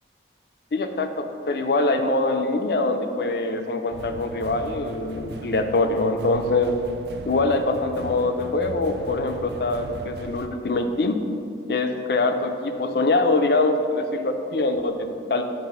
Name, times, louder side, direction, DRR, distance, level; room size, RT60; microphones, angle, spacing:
voice 1, 0.7-6.8 7.2-11.2 11.7-15.4, left 2 dB, 60° left, 7 dB, 0.5 m, -23 dB
sound 1, 3.9-10.5, right 3 dB, 65° right, 0.4 m, -38 dB
7.4 x 3.4 x 5.9 m, 2.5 s
head